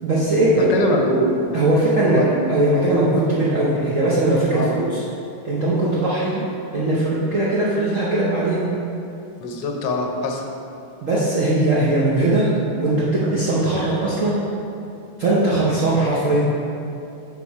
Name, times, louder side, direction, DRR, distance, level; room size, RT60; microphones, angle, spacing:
voice 1, 0.0-0.7 1.5-5.0 5.4-6.4 6.7-8.7 11.0-14.4 15.2-16.6, right 2 dB, 55° right, -8 dB, 0.9 m, -19 dB
voice 2, 0.6-1.6 2.1-2.4 4.5-4.8 9.4-10.4, left 1 dB, 65° left, 1 dB, 1.2 m, -23 dB
7.0 x 4.5 x 4.6 m, 2.7 s
omnidirectional pair, 2.4 m